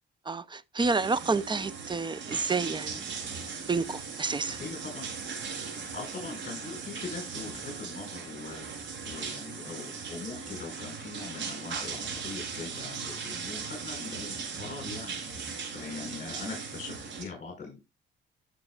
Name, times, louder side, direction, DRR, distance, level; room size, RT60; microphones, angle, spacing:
voice 1, 0.3-3.0 3.7-4.6, right 4 dB, 25° right, 0.6 m, -29 dB
sound 1, 0.8-17.2, right 5 dB, 70° right, 4.1 m, -38 dB
voice 2, 4.4-5.1 5.9-8.7 9.0-15.2 15.7-17.8, left 4 dB, 40° left, 5.3 m, -41 dB
15.0 x 6.1 x 2.4 m
cardioid pair, 90°, 20 cm